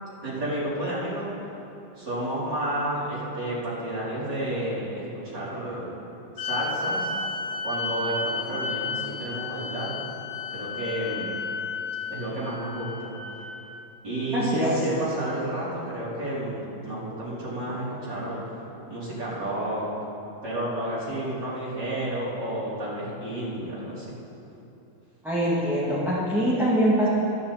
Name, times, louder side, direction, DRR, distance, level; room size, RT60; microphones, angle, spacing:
voice 1, 0.2-1.3 2.0-5.9 6.3-7.1 7.6-10.0 10.5-11.4 12.1-13.1 14.0-19.9 20.4-24.2, right 1 dB, 60° right, -10 dB, 4.7 m, -31 dB
sound 1, 6.4-13.9, left 3 dB, 85° left, 2.3 m, -33 dB
voice 2, 14.3-14.7 25.2-27.1, equal, ahead, -10 dB, 2.2 m, -23 dB
24.0 x 9.6 x 4.4 m, 3.0 s
omnidirectional pair, 2.2 m